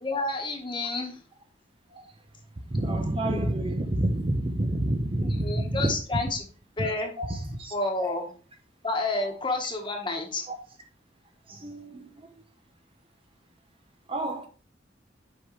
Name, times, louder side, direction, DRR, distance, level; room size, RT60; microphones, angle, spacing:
voice 1, 0.0-1.2 5.2-6.5 6.8-7.1 7.7-8.3 8.8-10.4, left 2 dB, 25° left, 1.4 m, -30 dB
voice 2, 2.7-6.0 6.8-6.9 7.2-7.7 8.0-8.1 11.5-12.3 14.1-14.5, right 1 dB, 30° right, 0.8 m, -28 dB
7.6 x 5.5 x 3.2 m
head